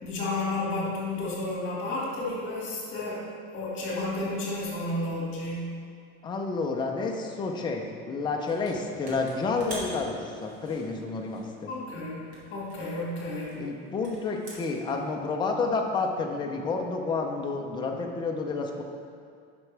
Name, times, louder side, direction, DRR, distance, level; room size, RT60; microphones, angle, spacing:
voice 1, 0.0-3.3 3.5-5.7 11.7-13.6, left 2 dB, 35° left, -5 dB, 2.2 m, -32 dB
voice 2, 6.2-11.7 13.5-18.8, left 4 dB, 15° left, 1 dB, 0.5 m, -30 dB
sound 1, 8.5-8.7 9.0-11.9 12.3-14.9, right 1 dB, 45° right, 2.1 m, -44 dB
10.5 x 6.0 x 3.4 m, 2.3 s
cardioid pair, 165°, 34 cm